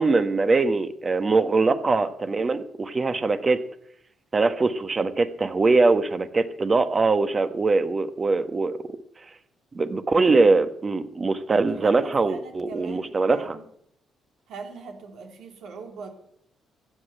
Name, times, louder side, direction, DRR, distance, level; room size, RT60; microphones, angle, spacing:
voice 1, 0.0-3.6 4.3-8.8 9.7-13.6, right 3 dB, 30° right, 10 dB, 1.3 m, -22 dB
voice 2, 11.5-13.7 14.5-16.1, right 5 dB, 75° right, 3 dB, 3.0 m, -41 dB
15.0 x 8.1 x 9.0 m, 0.71 s
cardioid pair, 90°, 0 cm